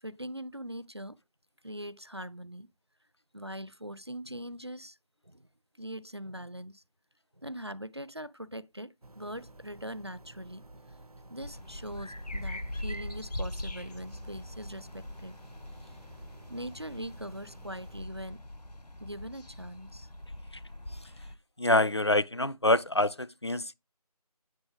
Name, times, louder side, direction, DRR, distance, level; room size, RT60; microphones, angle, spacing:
voice 1, 0.0-1.2 1.6-2.7 3.3-5.0 5.2-5.5 5.8-6.8 7.4-10.7 11.3-15.4 15.8-16.0 16.5-18.4 19.0-20.1, equal, 40° right, 0.4 m, -42 dB
sound 1, 9.0-18.0, right 2 dB, 65° right, 0.9 m, -53 dB
sound 2, 11.4-21.4, left 1 dB, 75° left, 1.0 m, -42 dB
voice 2, 21.6-23.7, left 1 dB, 45° left, 0.4 m, -26 dB
8.8 x 7.0 x 3.5 m
figure-of-eight pair, 170°, 20 cm